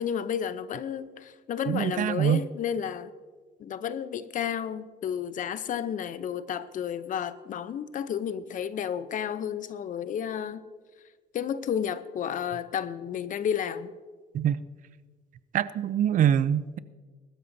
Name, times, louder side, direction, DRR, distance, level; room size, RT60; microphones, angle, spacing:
voice 1, 0.0-3.1 3.6-10.6 11.3-13.9, left 8 dB, 50° left, 0.7 m, -32 dB
voice 2, 1.7-2.4 14.3-14.6 15.5-16.8, right 10 dB, 50° right, 0.5 m, -24 dB
21.0 x 13.0 x 2.7 m
cardioid pair, 110°, 17 cm